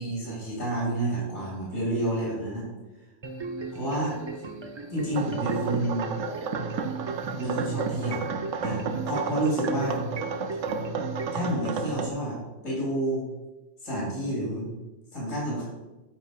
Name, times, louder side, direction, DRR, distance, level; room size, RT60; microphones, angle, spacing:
voice 1, 0.0-2.7 3.7-4.2 4.9-6.1 7.4-8.3 8.6-10.0 11.3-12.4 12.6-13.2 13.8-14.7 15.1-15.6, right 1 dB, 90° left, -4 dB, 2.7 m, -29 dB
sound 1, 3.2-11.5, right 3 dB, 45° right, 0.3 m, -38 dB
sound 2, 5.2-12.1, right 4 dB, 80° right, 1.0 m, -32 dB
8.9 x 4.8 x 4.7 m, 1.1 s
omnidirectional pair, 1.3 m